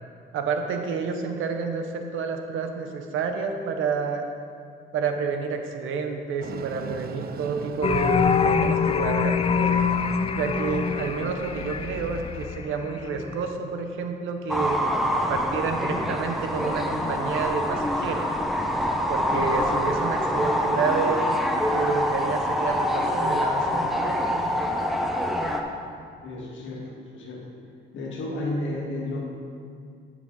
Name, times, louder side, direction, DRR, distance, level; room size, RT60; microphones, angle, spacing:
voice 1, 0.3-4.2 4.9-9.8 10.4-14.8 15.3-18.2 19.1-24.2, right 5 dB, 85° right, 5 dB, 1.0 m, -29 dB
Train, 6.4-12.5, right 7 dB, 50° right, 0.5 m, -39 dB
sound 1, 7.8-13.4, left 6 dB, 30° left, 0.4 m, -25 dB
sound 2, 14.5-25.6, equal, ahead, 0.9 m, -25 dB
voice 2, 26.2-27.5 27.9-29.2, left 2 dB, 75° left, -1 dB, 1.8 m, -32 dB
11.5 x 6.8 x 3.9 m, 2.2 s
cardioid pair, 90°, 20 cm